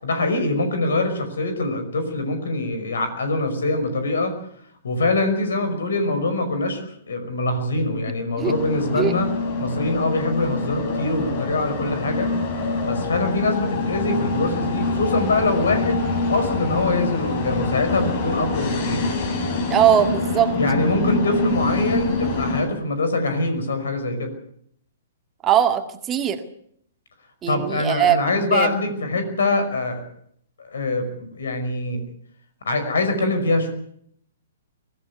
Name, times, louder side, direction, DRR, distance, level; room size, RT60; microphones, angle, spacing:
voice 1, 0.0-4.4 4.8-9.3 9.6-12.3 12.8-16.0 16.3-19.0 20.6-24.3 27.5-30.0 30.6-32.0 32.6-33.7, left 2 dB, 70° left, 9 dB, 5.4 m, -23 dB
sound 1, 8.4-22.6, left 3 dB, 45° left, 6.5 m, -25 dB
voice 2, 19.7-20.5 25.4-26.4 27.4-28.2 28.5-28.7, right 10 dB, 20° right, 6 dB, 1.9 m, -20 dB
24.0 x 15.5 x 8.3 m, 0.68 s
figure-of-eight pair, 120°, 0 cm